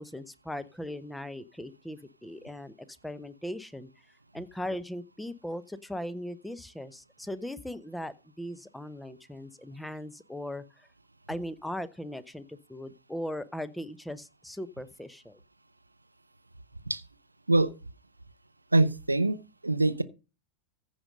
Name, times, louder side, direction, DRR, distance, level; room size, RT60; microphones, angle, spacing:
voice 1, 0.0-3.9 4.3-10.9 11.3-15.4, left 1 dB, 5° left, 0.9 m, -39 dB
voice 2, 18.7-20.0, right 2 dB, 80° right, 0.6 m, -24 dB
15.0 x 5.2 x 5.3 m
figure-of-eight pair, 90°, 0 cm